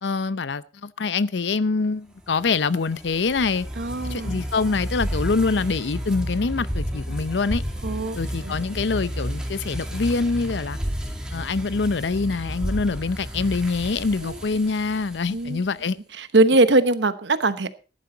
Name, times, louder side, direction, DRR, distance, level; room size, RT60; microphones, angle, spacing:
voice 1, 0.0-3.7 4.1-7.6 8.2-10.8 11.3-16.0, left 4 dB, 85° left, 0.6 m, -25 dB
sound 1, 2.3-15.6, equal, 5° right, 2.4 m, -32 dB
voice 2, 3.8-4.4 7.8-8.2 8.4-8.5 14.2-14.4 15.3-15.6 16.2-17.7, right 2 dB, 85° right, 1.0 m, -21 dB
14.0 x 11.0 x 3.9 m
head